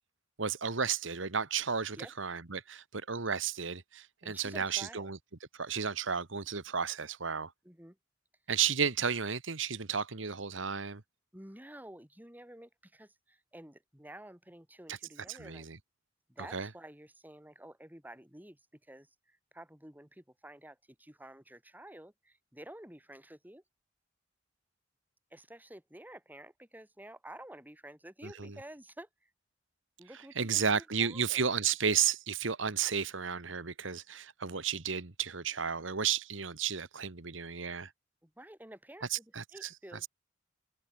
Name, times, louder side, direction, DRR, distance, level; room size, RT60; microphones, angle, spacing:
voice 1, 0.4-5.2 5.6-7.5 8.5-11.0 14.9-15.0 15.3-15.8 16.5-16.7 28.4-28.5 30.4-37.9 39.1-39.7, right 7 dB, 75° right, 1.5 m, -33 dB
voice 2, 4.2-5.1 7.6-8.0 11.3-15.7 16.3-23.6 25.3-29.3 30.0-31.5 38.2-40.1, right 1 dB, 10° right, 3.6 m, -51 dB
head